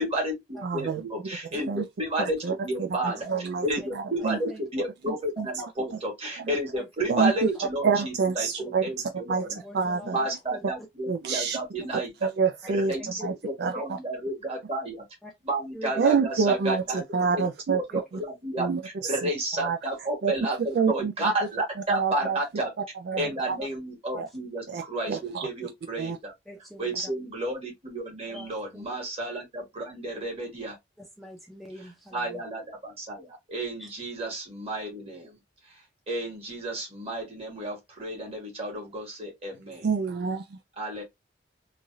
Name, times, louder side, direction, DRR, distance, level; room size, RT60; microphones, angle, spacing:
voice 1, 0.0-9.6 10.0-12.1 12.7-15.0 15.4-17.0 17.3-22.7 23.2-26.3 26.8-30.8 31.8-35.4 35.7-35.8 36.1-39.9 40.8-41.0, right 1 dB, 35° right, 1.5 m, -32 dB
voice 2, 0.6-1.0 1.7-1.9 2.4-3.6 3.9-4.4 5.1-5.5 6.4-6.5 7.1-7.5 7.8-8.8 9.3-9.5 9.7-10.2 11.1-11.6 12.2-12.9 13.2-14.0 16.0-17.8 18.6-19.3 19.6-19.8 20.2-20.3 20.7-21.1 21.9-22.4 23.1-23.6 24.1-24.3 24.7-24.8 25.1-25.5 26.0-26.2 39.8-40.6, right 5 dB, 60° right, 0.4 m, -27 dB
voice 3, 3.0-3.4 4.3-4.6 6.8-6.9 7.5-7.7 8.6-8.9 9.6-10.6 13.0-13.3 15.2-15.3 15.7-15.9 17.9-18.0 23.2-23.4 24.1-24.3 26.5-27.0 28.3-28.8 31.0-32.4 33.8-33.9, equal, ahead, 0.6 m, -44 dB
3.2 x 2.4 x 2.6 m
head